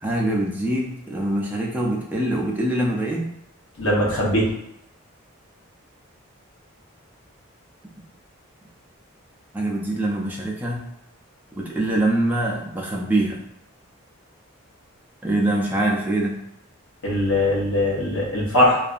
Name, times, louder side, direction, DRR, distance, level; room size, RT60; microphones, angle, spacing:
voice 1, 0.0-3.3 9.5-10.9 11.6-13.4 15.2-16.4, right 1 dB, 10° right, -3 dB, 0.3 m, -24 dB
voice 2, 3.8-4.5 17.0-18.8, left 1 dB, 70° left, -5 dB, 0.9 m, -20 dB
2.6 x 2.4 x 2.4 m, 0.80 s
head